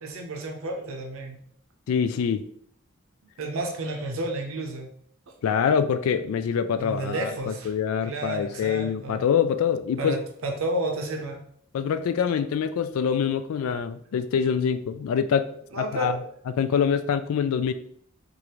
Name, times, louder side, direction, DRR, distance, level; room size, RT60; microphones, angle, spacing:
voice 1, 0.0-1.4 3.4-4.9 6.8-7.7 8.0-9.3 10.0-11.4 15.7-16.2, right 1 dB, 75° right, 2 dB, 0.6 m, -31 dB
voice 2, 1.9-2.5 5.4-10.2 11.7-15.5 15.8-16.1 16.6-17.7, left 7 dB, 85° left, 12 dB, 0.3 m, -25 dB
4.8 x 2.5 x 2.9 m, 0.65 s
head